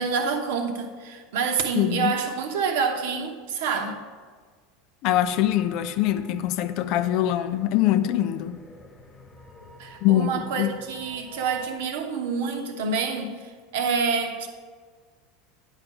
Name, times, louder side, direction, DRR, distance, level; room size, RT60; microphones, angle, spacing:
voice 1, 0.0-4.0 9.8-14.5, right 5 dB, 60° right, 5 dB, 0.9 m, -27 dB
voice 2, 1.7-2.1 5.0-8.6 10.0-10.3 10.6-10.7, left 13 dB, 50° left, 11 dB, 0.5 m, -23 dB
sound 1, 5.0-11.8, left 1 dB, 20° left, 1.2 m, -48 dB
9.8 x 4.9 x 6.1 m, 1.5 s
figure-of-eight pair, 80°, 0 cm